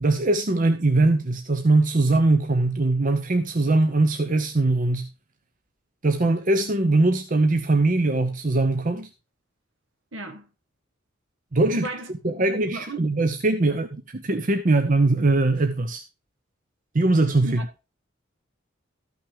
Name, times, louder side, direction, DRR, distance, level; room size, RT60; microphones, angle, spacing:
voice 1, 0.0-5.1 6.0-9.1 11.5-11.9 12.2-16.0 16.9-17.6, right 2 dB, 40° right, 0.8 m, -21 dB
voice 2, 10.1-10.5 11.7-13.0 13.7-13.8 17.4-17.6, equal, 70° right, 1.6 m, -35 dB
13.5 x 6.0 x 3.5 m
head